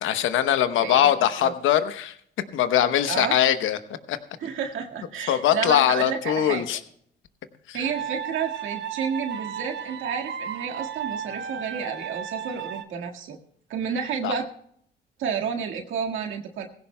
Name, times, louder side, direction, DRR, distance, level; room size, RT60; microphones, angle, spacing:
voice 1, 0.0-2.2 2.5-3.8 4.1-4.2 5.3-6.8 7.7-7.8 14.2-14.3, left 10 dB, 85° left, 11 dB, 0.9 m, -22 dB
voice 2, 0.8-1.1 1.4-1.5 3.1-3.4 4.4-6.6 7.7-13.4 13.7-14.5 15.2-16.7, right 6 dB, 80° right, 2 dB, 1.8 m, -30 dB
sound 1, 7.8-12.8, right 8 dB, 65° right, 1.1 m, -34 dB
19.0 x 16.0 x 2.2 m, 0.67 s
cardioid pair, 90°, 20 cm